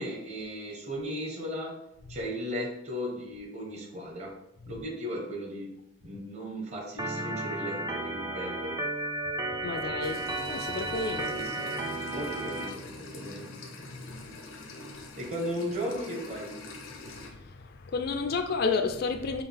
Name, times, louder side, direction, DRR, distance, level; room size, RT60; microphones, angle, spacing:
voice 1, 0.0-1.8 2.1-4.3 4.7-5.7 6.0-8.8 11.3-11.7 12.1-13.5 15.2-16.5, equal, 35° right, 0.8 m, -36 dB
Organ, 7.0-12.7, right 2 dB, 20° right, 0.3 m, -33 dB
voice 2, 9.6-11.3 14.1-14.3 17.1-19.4, left 4 dB, 50° left, 0.3 m, -31 dB
sound 1, 10.0-17.3, left 2 dB, 90° left, 0.7 m, -44 dB
5.6 x 2.4 x 3.3 m
head